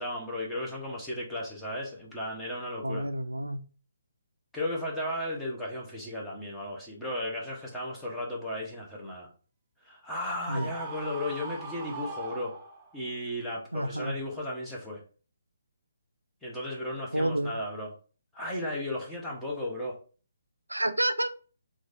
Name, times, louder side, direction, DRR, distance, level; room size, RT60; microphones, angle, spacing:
voice 1, 0.0-3.1 4.5-9.3 9.8-12.5 12.9-15.0 16.4-17.9 18.3-20.0, left 1 dB, 5° left, -4 dB, 0.8 m, -35 dB
voice 2, 2.8-3.6 10.5-10.7 13.7-14.1 17.1-17.6 20.7-21.3, right 1 dB, 90° right, 10 dB, 0.3 m, -29 dB
Screaming, 10.4-13.1, right 3 dB, 25° right, 0.4 m, -40 dB
3.1 x 2.4 x 2.6 m, 0.37 s
figure-of-eight pair, 140°, 0 cm